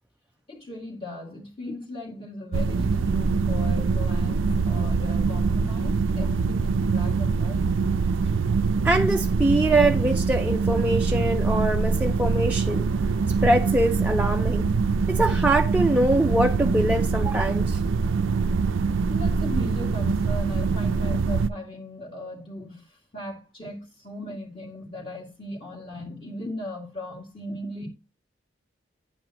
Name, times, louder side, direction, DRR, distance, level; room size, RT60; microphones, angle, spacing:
voice 1, 0.5-7.8 19.1-27.9, left 1 dB, 25° left, 2.1 m, -37 dB
sound 1, 2.5-21.5, right 4 dB, 85° right, 0.4 m, -24 dB
voice 2, 8.8-12.9 13.4-14.6 15.1-17.8, right 1 dB, 10° right, 0.4 m, -23 dB
9.8 x 8.6 x 2.9 m
head